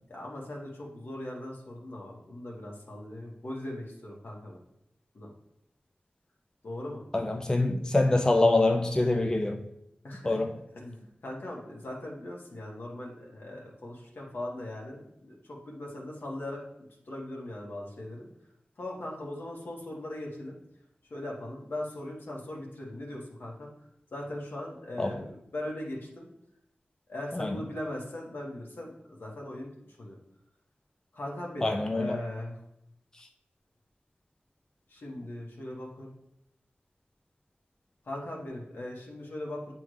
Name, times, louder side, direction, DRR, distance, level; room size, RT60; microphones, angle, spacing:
voice 1, 0.1-4.6 5.1-5.3 6.6-7.0 10.0-10.4 10.7-16.6 17.1-18.3 18.8-20.6 21.1-23.7 24.1-26.3 27.1-29.7 30.0-30.2 31.1-32.6 34.9-36.1 38.0-39.7, left 1 dB, 75° left, -2 dB, 1.5 m, -39 dB
voice 2, 7.1-9.6 10.2-10.6 25.0-25.2 27.3-27.6 31.6-32.2, left 2 dB, 20° left, 4 dB, 0.4 m, -25 dB
9.1 x 3.5 x 3.2 m, 0.78 s
wide cardioid pair, 95°, 4 cm